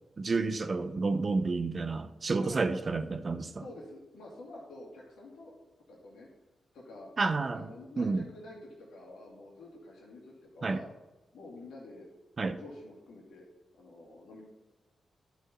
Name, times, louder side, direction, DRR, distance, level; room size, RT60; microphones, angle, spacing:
voice 1, 0.2-3.6 7.2-8.3 10.6-10.8 12.4-12.6, right 3 dB, 50° right, 10 dB, 0.6 m, -30 dB
voice 2, 2.4-2.8 3.6-5.6 5.9-6.3 6.7-7.1 7.5-10.9 11.3-12.1 12.4-13.4 13.8-14.4, left 2 dB, 80° left, -3 dB, 2.3 m, -48 dB
11.5 x 4.7 x 4.2 m, 1.1 s
supercardioid pair, 45°, 0 cm